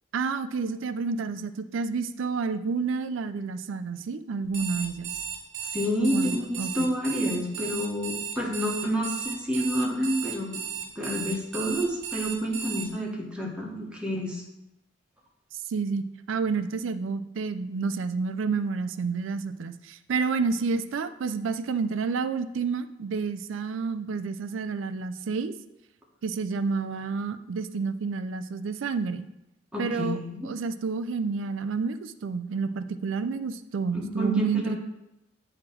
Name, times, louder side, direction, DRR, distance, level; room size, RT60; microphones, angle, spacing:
voice 1, 0.1-5.2 6.1-6.9 15.7-25.5 26.2-29.3 29.8-30.2 30.4-34.8, right 4 dB, 85° right, 11 dB, 0.4 m, -29 dB
Alarm, 4.4-12.9, right 7 dB, 60° right, 0.9 m, -35 dB
voice 2, 5.7-14.4 29.7-30.5 33.9-34.8, equal, 5° right, -3 dB, 1.2 m, -29 dB
7.6 x 2.9 x 6.0 m, 0.91 s
head